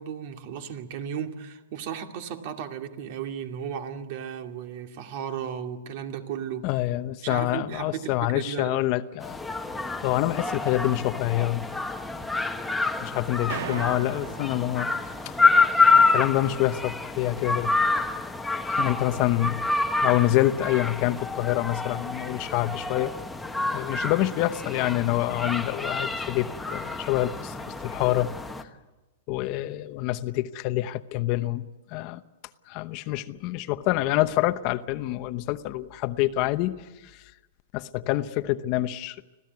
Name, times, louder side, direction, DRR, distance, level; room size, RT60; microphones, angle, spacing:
voice 1, 0.0-6.7 7.2-8.8, right 8 dB, 50° right, 2.4 m, -35 dB
voice 2, 6.6-9.4 10.0-11.7 13.0-14.9 15.2-15.4 15.7-17.7 18.7-19.6 20.0-23.1 23.7-28.3 28.6-28.7 29.3-32.2 32.7-37.2 37.7-39.2, left 15 dB, 40° left, 0.9 m, -26 dB
sound 1, 9.2-28.6, left 3 dB, 5° left, 1.3 m, -27 dB
sound 2, 13.5-15.5, right 8 dB, 70° right, 1.6 m, -37 dB
25.5 x 16.5 x 9.5 m
supercardioid pair, 155°, 0 cm